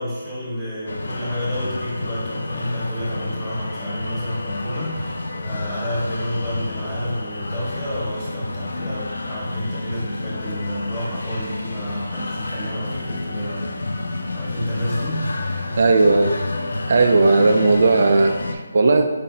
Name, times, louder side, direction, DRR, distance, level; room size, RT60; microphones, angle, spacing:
voice 1, 0.0-13.7 14.3-15.4, equal, 10° left, -9 dB, 1.4 m, -29 dB
sound 1, 0.9-18.5, left 2 dB, 85° left, 0.5 m, -29 dB
voice 2, 15.8-16.3 16.9-19.1, right 3 dB, 55° right, 4 dB, 0.3 m, -16 dB
4.9 x 3.9 x 2.8 m, 1.3 s
hypercardioid pair, 170°, 0 cm